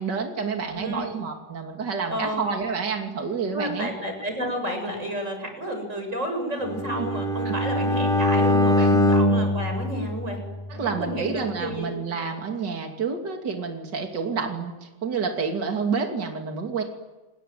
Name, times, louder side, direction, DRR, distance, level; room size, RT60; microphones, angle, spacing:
voice 1, 0.0-3.9 7.0-7.1 7.5-7.6 8.8-9.0 10.8-16.8, right 5 dB, 55° right, 3 dB, 3.4 m, -29 dB
voice 2, 0.6-1.1 2.1-2.5 3.5-10.4 10.7-11.9, equal, 35° right, 5 dB, 8.2 m, -31 dB
Bowed string instrument, 6.7-10.8, left 1 dB, ahead, 3.7 m, -22 dB
29.0 x 21.5 x 9.4 m, 1.1 s
omnidirectional pair, 2.3 m